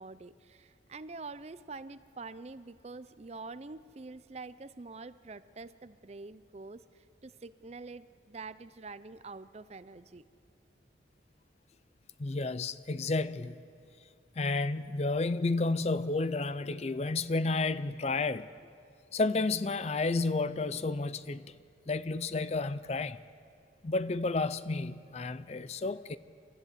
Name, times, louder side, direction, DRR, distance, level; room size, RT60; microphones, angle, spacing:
voice 1, 0.0-10.3, right 3 dB, 35° right, 0.5 m, -46 dB
voice 2, 12.2-13.6 14.4-18.5 19.1-21.5 21.9-23.2 23.8-26.2, left 3 dB, 35° left, 0.5 m, -31 dB
28.0 x 13.5 x 8.2 m
head